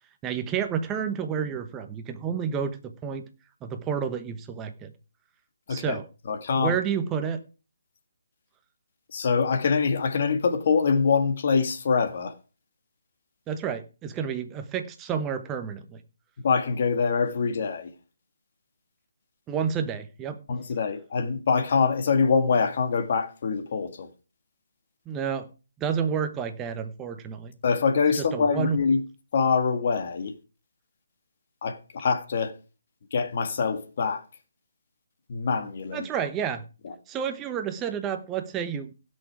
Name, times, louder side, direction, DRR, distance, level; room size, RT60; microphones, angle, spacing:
voice 1, 0.2-3.2 3.6-4.9 5.7-6.0 6.6-7.4 13.5-16.0 19.5-20.4 25.1-25.5 25.8-27.5 28.2-28.8 35.9-36.6 37.1-38.9, right 7 dB, 15° right, 1.0 m, -30 dB
voice 2, 6.3-6.8 9.1-12.3 16.4-17.9 20.5-24.1 27.6-29.0 29.3-30.4 31.6-32.5 33.1-34.2 35.3-36.1 36.8-36.9, left 5 dB, 45° left, 1.9 m, -24 dB
16.5 x 6.4 x 4.8 m
hypercardioid pair, 165°, 0 cm